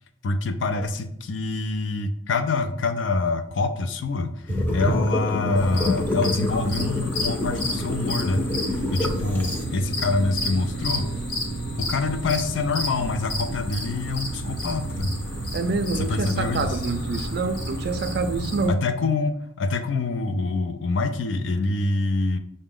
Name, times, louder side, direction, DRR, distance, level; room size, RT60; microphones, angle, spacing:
voice 1, 0.2-11.1 11.8-15.1 15.6-16.8 18.7-22.4, left 3 dB, 70° left, 8 dB, 0.4 m, -26 dB
sound 1, 4.5-9.6, left 2 dB, 10° left, 0.6 m, -27 dB
sound 2, 5.5-18.7, equal, 55° left, 1.0 m, -30 dB
voice 2, 15.5-18.8, right 3 dB, 55° right, 8 dB, 0.4 m, -26 dB
5.8 x 2.1 x 3.6 m, 0.76 s
head